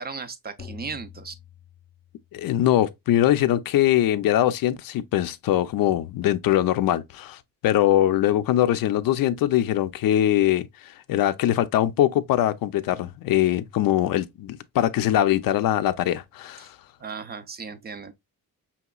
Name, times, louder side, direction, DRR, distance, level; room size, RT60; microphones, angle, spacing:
voice 1, 0.0-1.3 16.6-16.7 17.0-18.1, right 5 dB, 30° right, 0.4 m, -36 dB
sound 1, 0.6-2.5, left 8 dB, 30° left, 0.5 m, -45 dB
voice 2, 2.3-16.7, left 12 dB, 90° left, 0.5 m, -22 dB
5.7 x 2.9 x 2.3 m
wide cardioid pair, 170°, 33 cm